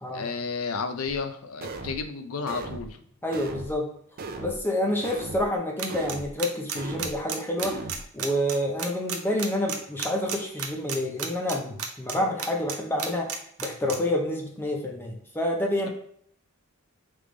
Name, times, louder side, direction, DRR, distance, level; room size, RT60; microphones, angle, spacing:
voice 1, 0.1-3.0 4.9-5.0, left 5 dB, 80° left, 8 dB, 0.5 m, -32 dB
sound 1, 1.1-1.2 1.6-2.0 2.5-2.9 3.3-3.7 4.2-4.6 5.0-5.5 5.9-6.3 6.8-7.2 7.6-8.0, right 2 dB, 45° right, 0.5 m, -37 dB
voice 2, 3.2-3.9 4.4-7.8 8.1-13.3 13.6-15.9, left 1 dB, 10° left, 0 dB, 0.6 m, -28 dB
sound 2, 5.8-12.7 13.0-14.0, right 7 dB, 85° right, 0.6 m, -31 dB
3.4 x 3.4 x 3.8 m, 0.65 s
head